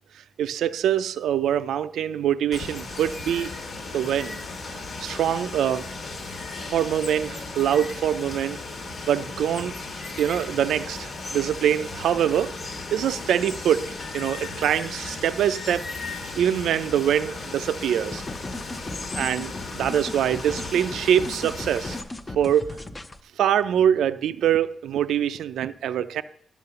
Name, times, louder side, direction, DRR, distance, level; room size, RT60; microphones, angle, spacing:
voice 1, 0.4-3.5 3.9-4.4 5.0-5.9 6.7-8.6 9.1-9.7 10.2-12.5 12.9-18.2 19.2-22.0 22.4-22.7 23.4-26.2, right 10 dB, 80° right, 0.4 m, -24 dB
Water, 2.5-22.0, left 3 dB, 55° left, 1.4 m, -36 dB
sound 1, 18.1-23.2, left 1 dB, 20° left, 0.6 m, -37 dB
11.0 x 5.6 x 6.8 m
cardioid pair, 110°, 0 cm